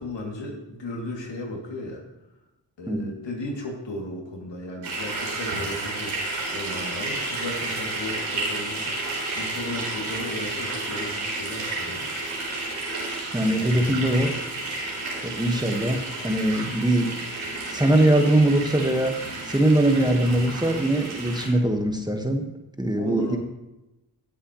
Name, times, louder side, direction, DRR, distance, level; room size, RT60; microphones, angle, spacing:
voice 1, 0.0-2.0 2.8-6.2 6.5-12.0 13.3-14.2 23.0-23.4, left 1 dB, 65° left, 0 dB, 2.9 m, -35 dB
sound 1, 4.8-21.5, right 2 dB, 85° right, 4.1 m, -31 dB
voice 2, 13.3-14.3 15.2-19.2 19.4-22.5 22.8-23.4, right 1 dB, 10° right, 3 dB, 1.6 m, -22 dB
16.5 x 7.9 x 3.2 m, 0.98 s
supercardioid pair, 45°, 45 cm